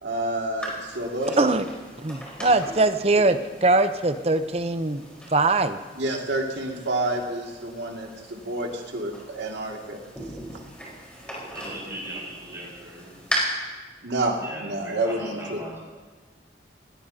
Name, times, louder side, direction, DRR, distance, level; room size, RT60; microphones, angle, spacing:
voice 1, 0.0-1.4 6.0-10.0 14.0-15.6, right 2 dB, 90° right, 0 dB, 2.2 m, -29 dB
sound 1, 0.6-13.4, equal, 5° left, 4.2 m, -40 dB
voice 2, 2.0-5.0 5.3-5.8, right 2 dB, 35° right, 10 dB, 0.7 m, -21 dB
voice 3, 11.5-13.2 14.4-15.8, right 1 dB, 15° right, -6 dB, 5.3 m, -38 dB
20.0 x 17.5 x 2.8 m, 1.3 s
head